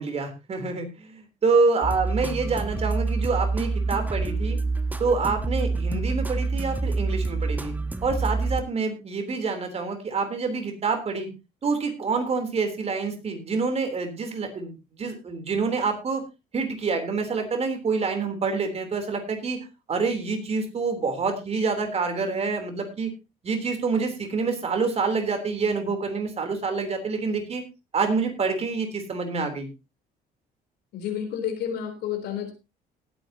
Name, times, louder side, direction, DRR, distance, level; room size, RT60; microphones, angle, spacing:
voice 1, 0.0-4.6 5.0-7.7 8.0-11.3 11.6-16.2 16.5-19.6 19.9-23.1 23.4-27.6 27.9-29.7, right 4 dB, 40° right, 6 dB, 3.7 m, -27 dB
sound 1, 1.8-8.6, right 3 dB, 10° right, 1.3 m, -27 dB
voice 2, 30.9-32.5, left 9 dB, 80° left, 5 dB, 4.0 m, -30 dB
19.0 x 8.9 x 2.9 m, 0.27 s
cardioid pair, 110°, 17 cm